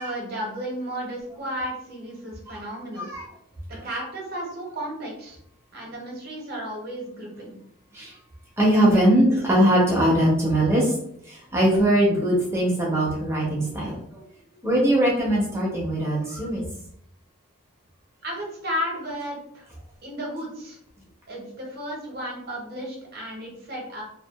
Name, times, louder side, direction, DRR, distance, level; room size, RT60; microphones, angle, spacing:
voice 1, 0.0-3.1 3.7-5.4 5.7-7.6 18.2-19.7 20.0-20.8 21.3-24.0, equal, 45° right, -2 dB, 0.8 m, -33 dB
voice 2, 8.6-10.9 11.3-14.2 14.6-16.6, right 1 dB, 10° right, -4 dB, 0.6 m, -21 dB
2.7 x 2.3 x 2.3 m, 0.70 s
head